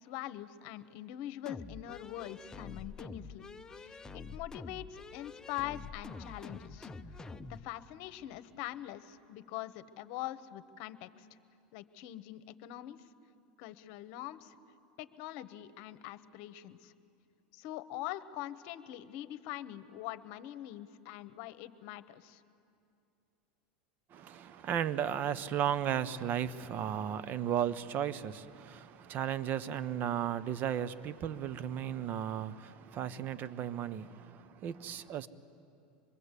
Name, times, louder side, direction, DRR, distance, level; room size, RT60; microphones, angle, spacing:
voice 1, 0.0-3.5 3.7-11.3 11.7-13.0 13.6-14.5 15.0-16.9 17.5-22.4, left 14 dB, 60° left, 13 dB, 1.0 m, -43 dB
sound 1, 1.5-7.6, left 4 dB, 15° left, 0.8 m, -46 dB
voice 2, 24.1-35.3, right 9 dB, 45° right, 15 dB, 0.9 m, -35 dB
25.0 x 22.0 x 8.3 m, 2.6 s
supercardioid pair, 115°, 5 cm